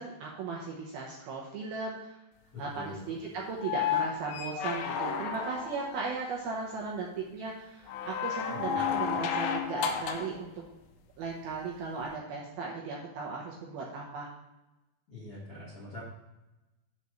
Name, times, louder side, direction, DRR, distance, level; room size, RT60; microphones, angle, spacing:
voice 1, 0.0-2.1 2.6-10.5 11.2-14.3, right 4 dB, 75° right, -2 dB, 2.3 m, -37 dB
voice 2, 2.5-3.0 8.5-9.1 15.1-16.0, left 2 dB, 55° left, -8 dB, 1.7 m, -44 dB
sound 1, 3.5-6.0 7.9-10.4 12.0-12.1, left 7 dB, 85° left, 2.9 m, -32 dB
7.1 x 4.1 x 6.3 m, 1.0 s
omnidirectional pair, 5.1 m